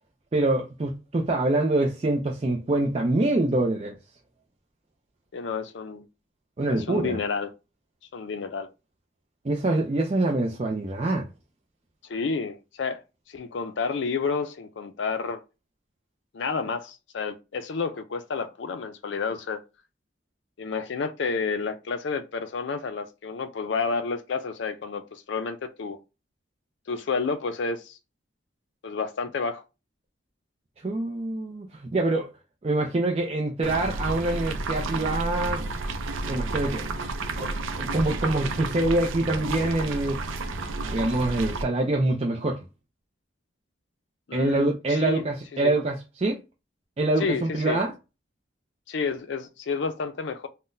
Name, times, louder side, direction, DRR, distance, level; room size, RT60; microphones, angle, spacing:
voice 1, 0.3-4.0 6.6-7.2 9.4-11.2 30.8-32.3 32.6-35.6 36.3-36.8 37.4-40.2 40.9-42.6 44.3-46.4 47.0-47.9, right 2 dB, 30° right, 0.4 m, -25 dB
voice 2, 5.3-6.1 6.7-7.5 8.1-8.7 12.1-13.0 13.3-15.4 16.3-19.6 20.6-26.0 26.9-28.0 28.8-29.6 44.3-45.2 45.5-45.8 47.2-47.8 48.9-50.5, left 4 dB, 65° left, 0.4 m, -30 dB
sound 1, 33.6-41.6, right 3 dB, 90° right, 0.5 m, -31 dB
3.8 x 2.1 x 2.6 m
head